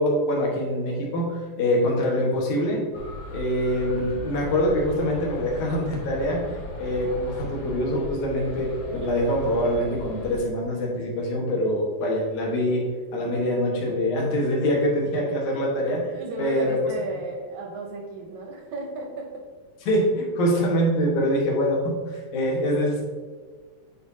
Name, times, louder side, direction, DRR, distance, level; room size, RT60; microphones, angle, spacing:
voice 1, 0.0-2.8 3.3-12.9 13.1-16.8 19.9-23.0, equal, 60° left, -2 dB, 2.6 m, -24 dB
sound 1, 2.9-10.4, left 2 dB, 90° left, 3.1 m, -38 dB
voice 2, 16.1-19.5, right 2 dB, 75° right, 1 dB, 1.8 m, -35 dB
8.6 x 4.9 x 2.7 m, 1.5 s
omnidirectional pair, 4.1 m